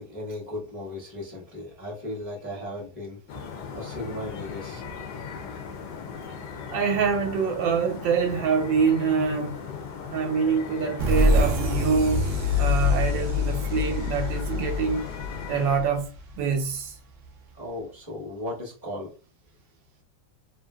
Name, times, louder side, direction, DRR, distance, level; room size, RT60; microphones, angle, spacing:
voice 1, 0.0-3.2 3.7-4.8 17.5-19.1, left 1 dB, 15° left, 0.6 m, -36 dB
sound 1, 3.3-15.8, left 6 dB, 70° left, 1.0 m, -38 dB
voice 2, 6.7-9.6 10.1-12.2 12.6-15.1 15.5-16.0 16.4-17.0, right 5 dB, 80° right, 1.4 m, -25 dB
sound 2, 11.0-16.5, left 2 dB, 65° right, 0.8 m, -25 dB
3.1 x 2.5 x 2.3 m
omnidirectional pair, 2.0 m